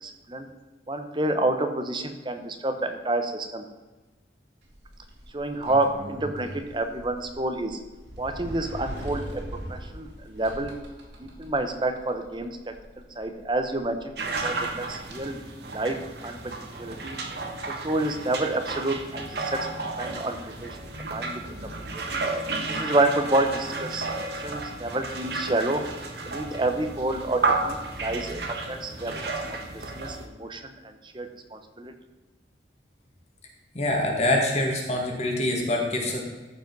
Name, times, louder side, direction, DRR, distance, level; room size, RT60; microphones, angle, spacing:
voice 1, 0.0-0.5 0.9-3.6 5.3-7.8 8.2-9.4 9.7-10.7 11.2-12.6 13.2-14.0 14.4-15.4 15.7-17.2 17.6-19.7 20.0-20.8 21.1-21.4 22.1-22.2 22.7-24.1 24.4-25.8 26.2-30.7 31.1-31.9, right 2 dB, 25° right, 6 dB, 0.9 m, -29 dB
Sliding door, 4.6-15.2, equal, 80° right, 2.8 m, -42 dB
sound 1, 14.2-30.3, right 3 dB, 60° right, 1.4 m, -32 dB
voice 2, 33.7-36.2, left 1 dB, 35° left, 0 dB, 1.8 m, -25 dB
14.0 x 5.4 x 5.3 m, 1.2 s
head